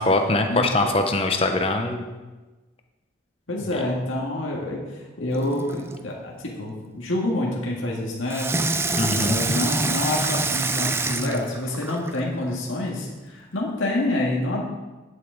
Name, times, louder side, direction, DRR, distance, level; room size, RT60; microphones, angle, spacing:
voice 1, 0.0-2.1 3.6-3.8 9.0-9.4, left 2 dB, 30° left, 4 dB, 0.8 m, -23 dB
voice 2, 3.5-4.8 5.2-8.5 9.1-14.6, left 1 dB, 90° left, -3 dB, 2.0 m, -27 dB
Water tap faucet / Sink (filling or washing), 5.3-6.0 8.3-12.2 12.9-13.0, right 3 dB, 10° right, 0.4 m, -26 dB
11.0 x 8.3 x 4.0 m, 1.2 s
head